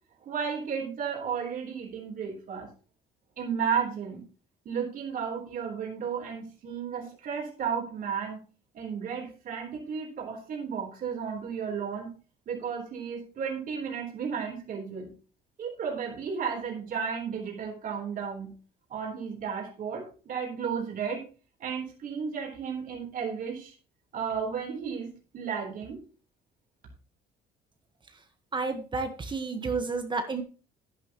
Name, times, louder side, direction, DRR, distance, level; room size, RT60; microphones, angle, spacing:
voice 1, 0.2-2.7 3.4-4.2 4.7-8.4 8.7-12.1 12.5-15.1 15.6-18.5 18.9-21.2 21.6-23.7 24.1-26.0, right 6 dB, 55° right, 0 dB, 3.7 m, -33 dB
voice 2, 28.5-30.4, right 4 dB, 30° right, 7 dB, 1.3 m, -31 dB
11.0 x 10.5 x 3.0 m, 0.36 s
cardioid pair, 110°, 17 cm